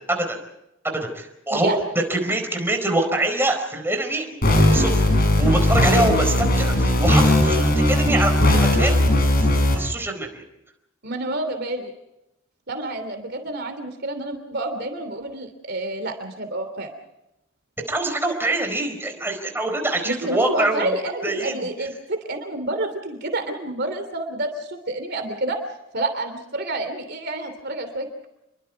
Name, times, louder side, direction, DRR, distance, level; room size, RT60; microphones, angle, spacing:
voice 1, 0.1-0.4 0.8-1.7 2.1-5.0 5.4-9.5 9.7-10.4 17.9-21.0 21.2-21.7, right 2 dB, 10° right, 4 dB, 4.5 m, -25 dB
sound 1, 4.4-9.8, left 1 dB, 45° left, 6.5 m, -18 dB
voice 2, 11.0-11.9 12.7-16.9 20.0-25.6 25.9-28.3, right 2 dB, 55° right, 7 dB, 3.0 m, -28 dB
29.0 x 23.0 x 4.7 m, 0.88 s
head